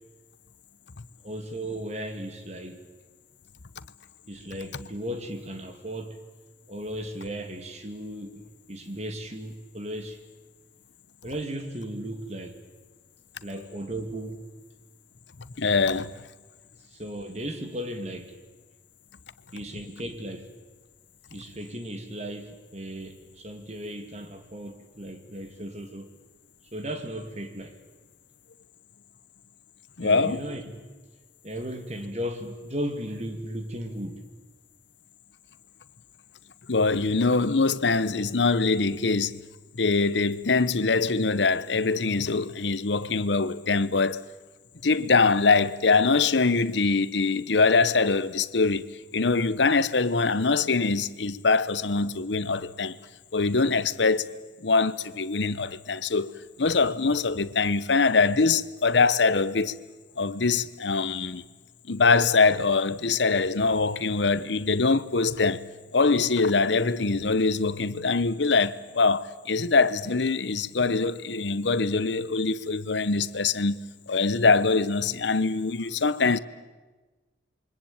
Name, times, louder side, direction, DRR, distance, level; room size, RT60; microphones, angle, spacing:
voice 1, 1.2-2.8 4.3-6.2 6.7-10.2 11.2-12.6 13.4-14.5 16.9-18.3 19.5-20.5 21.3-26.1 26.7-27.8 30.0-30.8 31.4-34.2, right 1 dB, 35° right, 2.5 m, -36 dB
voice 2, 15.6-16.1 30.0-30.4 36.7-39.4 39.7-44.2 44.8-48.9 49.1-53.0 53.3-54.3 54.6-56.3 56.6-59.7 60.2-61.4 61.9-65.6 65.9-73.8 74.1-76.4, left 4 dB, 75° left, 0.9 m, -23 dB
28.0 x 24.0 x 8.8 m
head